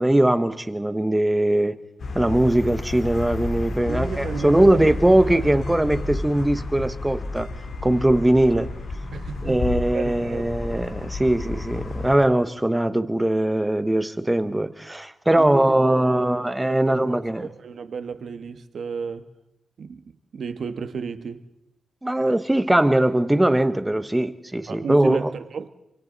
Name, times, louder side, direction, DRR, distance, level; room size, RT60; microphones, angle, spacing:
voice 1, 0.0-1.8 2.1-7.5 7.8-8.7 9.4-17.5 22.0-25.3, right 1 dB, 10° right, 1.1 m, -20 dB
sound 1, 2.0-12.2, left 3 dB, 75° left, 2.8 m, -31 dB
voice 2, 3.9-4.8 5.4-5.5 9.1-9.6 9.9-10.4 15.4-16.4 16.7-19.3 19.8-21.4 24.7-25.7, right 5 dB, 75° right, 1.6 m, -33 dB
27.5 x 25.0 x 4.1 m
wide cardioid pair, 145°, 0 cm